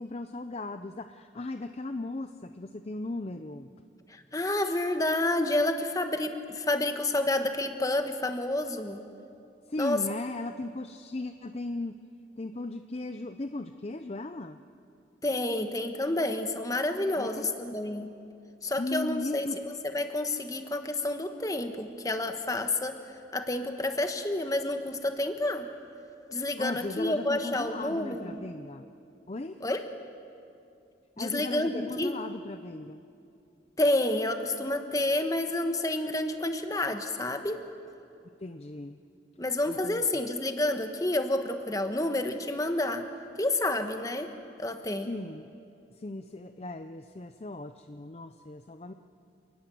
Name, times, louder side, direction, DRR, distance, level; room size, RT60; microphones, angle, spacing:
voice 1, 0.0-3.7 9.7-12.0 12.4-14.6 17.2-17.5 18.8-19.6 26.6-28.9 29.3-29.6 31.2-33.0 38.4-39.0 39.7-40.0 45.0-45.5 45.9-48.9, left 2 dB, 35° left, 9 dB, 0.5 m, -37 dB
voice 2, 4.1-9.0 9.8-10.0 15.2-18.1 18.6-19.5 19.9-23.0 23.3-25.7 26.3-28.4 29.6-29.8 31.2-32.2 33.8-37.6 39.4-43.1 43.4-44.3 44.6-45.1, left 1 dB, 20° left, 7 dB, 1.3 m, -29 dB
28.5 x 19.0 x 7.8 m, 2.7 s
head